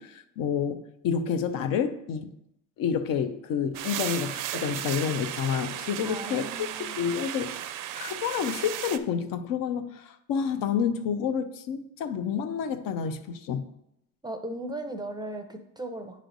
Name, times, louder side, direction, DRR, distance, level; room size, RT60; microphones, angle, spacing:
voice 1, 0.0-2.3 2.8-6.7 7.0-13.6, left 7 dB, 60° left, 0.7 m, -29 dB
sound 1, 3.7-9.0, right 11 dB, 55° right, 0.5 m, -35 dB
voice 2, 6.1-7.0 14.2-16.2, right 1 dB, 10° right, 0.6 m, -37 dB
9.1 x 3.2 x 3.9 m
cardioid pair, 105°, 37 cm